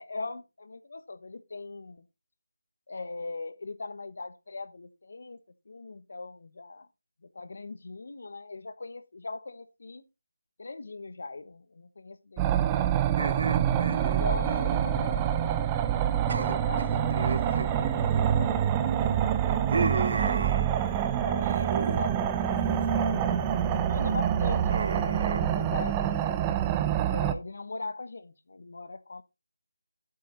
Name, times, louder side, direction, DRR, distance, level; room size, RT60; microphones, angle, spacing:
voice 1, 0.0-2.0 2.9-5.4 5.7-6.9 7.2-10.1 10.6-13.3 14.0-20.8 21.1-21.6 22.0-22.2 22.9-26.2 27.0-29.2, left 3 dB, 55° left, 1.1 m, -41 dB
sound 1, 12.4-27.3, right 9 dB, 10° right, 0.5 m, -26 dB
sound 2, 13.2-15.6 15.8-16.0 16.3-18.6 19.0-21.0 21.4-22.1 22.4-22.9 23.3-23.7 24.7-25.4, right 4 dB, 45° right, 0.9 m, -34 dB
7.9 x 7.7 x 4.0 m
figure-of-eight pair, 170°, 0 cm